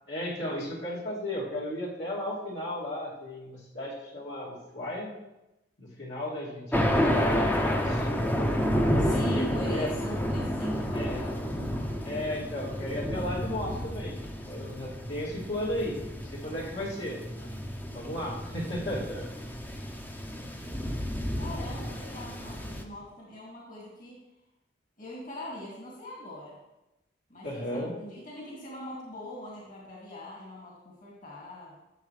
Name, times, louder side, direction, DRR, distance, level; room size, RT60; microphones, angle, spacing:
voice 1, 0.1-5.1 5.8-8.3 9.0-9.9 10.9-11.3 12.0-14.2 14.5-17.5 17.9-19.2 27.4-27.9, left 1 dB, 70° left, -6 dB, 2.8 m, -35 dB
Thunder, 6.7-22.8, equal, 10° left, 0.7 m, -30 dB
voice 2, 9.0-11.6 21.4-24.2 25.0-26.6 27.3-31.8, equal, 50° left, -5 dB, 2.5 m, -41 dB
12.5 x 7.2 x 3.3 m, 0.96 s
head